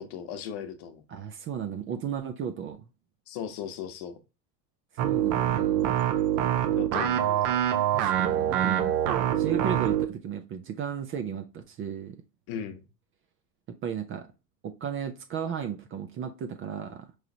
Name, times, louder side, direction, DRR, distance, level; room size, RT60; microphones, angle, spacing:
voice 1, 0.0-1.0 3.3-4.2 6.8-7.5 12.5-12.8, left 8 dB, 50° left, 1.0 m, -37 dB
voice 2, 1.1-2.9 5.0-6.0 7.9-9.0 9.4-12.2 13.8-14.3 14.6-17.1, right 8 dB, 25° right, 0.5 m, -35 dB
sound 1, 5.0-10.1, right 11 dB, 50° right, 0.8 m, -25 dB
4.7 x 3.2 x 2.7 m
figure-of-eight pair, 75°, 49 cm